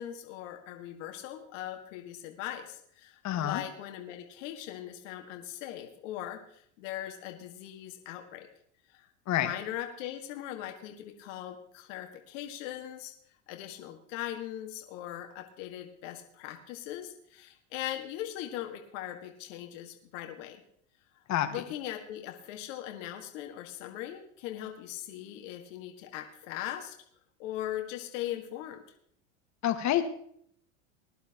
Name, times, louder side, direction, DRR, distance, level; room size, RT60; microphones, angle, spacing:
voice 1, 0.0-8.5 8.9-13.1 13.5-20.6 21.2-27.0 27.4-28.8, left 12 dB, 70° left, 4 dB, 1.8 m, -40 dB
voice 2, 3.2-3.6 9.3-9.5 21.3-21.5 29.6-30.0, left 12 dB, 45° left, 7 dB, 1.6 m, -27 dB
20.0 x 11.0 x 2.9 m, 0.66 s
hypercardioid pair, 95°, 39 cm